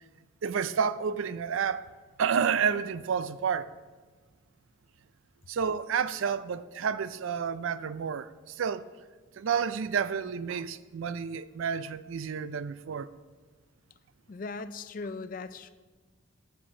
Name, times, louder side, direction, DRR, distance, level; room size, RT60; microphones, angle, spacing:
voice 1, 0.4-1.9 2.2-3.7 5.5-8.9 9.4-13.1, right 6 dB, 75° right, 0.4 m, -30 dB
voice 2, 14.3-15.7, left 3 dB, 40° left, 0.4 m, -38 dB
7.4 x 7.3 x 6.0 m
head